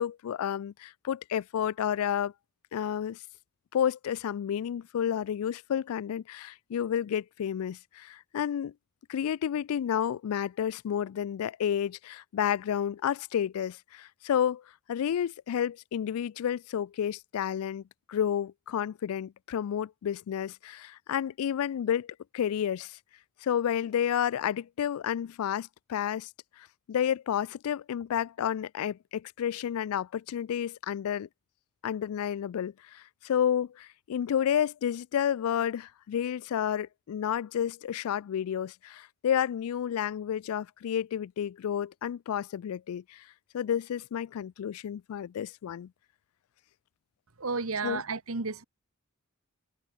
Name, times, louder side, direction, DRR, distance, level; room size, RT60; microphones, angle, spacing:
voice 1, 0.0-2.3 2.7-3.2 3.7-8.7 9.1-14.6 14.9-23.0 23.4-26.3 26.6-31.3 31.8-43.2 43.5-45.9 47.8-48.0, left 9 dB, 75° left, 0.3 m, -31 dB
voice 2, 47.4-48.6, right 4 dB, 70° right, 1.4 m, -32 dB
head